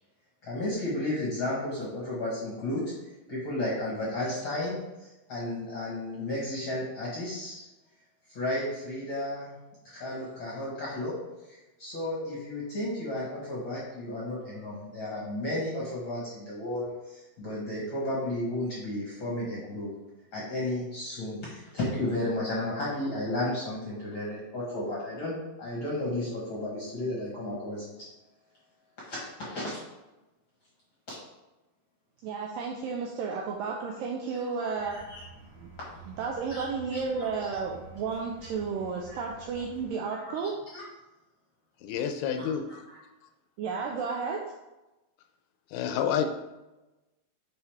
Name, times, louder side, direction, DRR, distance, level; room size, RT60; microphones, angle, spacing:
voice 1, 0.4-2.8 3.3-7.6 8.3-9.5 9.8-11.1 11.5-19.9 20.3-27.9 29.1-29.8 34.9-35.2 35.9-36.0 36.5-36.6 36.9-37.3 38.4-38.5 39.1-39.2 40.1-40.2 40.7-40.8 42.4-43.0, left 1 dB, 55° left, -6 dB, 1.4 m, -33 dB
voice 2, 32.2-35.0 35.6-35.7 36.1-40.5 43.6-44.5, right 5 dB, 85° right, 0 dB, 2.0 m, -32 dB
sound 1, 34.8-39.9, right 3 dB, 55° right, 1.7 m, -50 dB
voice 3, 41.8-42.7 45.7-46.3, left 8 dB, 80° left, 6 dB, 2.5 m, -28 dB
8.5 x 4.5 x 3.5 m, 1.0 s
omnidirectional pair, 4.6 m